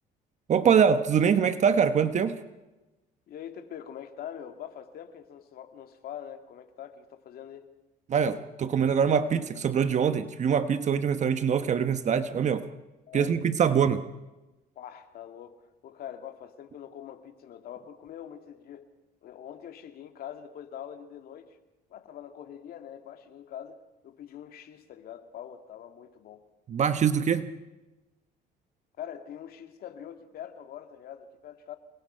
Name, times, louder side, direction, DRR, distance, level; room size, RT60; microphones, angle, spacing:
voice 1, 0.5-2.4 8.1-12.7 13.1-14.1 26.7-27.5, right 7 dB, 45° right, 11 dB, 1.1 m, -24 dB
voice 2, 3.3-7.7 13.1-13.4 14.8-18.9 19.2-21.6 21.9-26.5 29.0-31.8, left 9 dB, 65° left, 7 dB, 2.3 m, -44 dB
27.5 x 21.0 x 5.7 m, 1.0 s
cardioid pair, 110°, 17 cm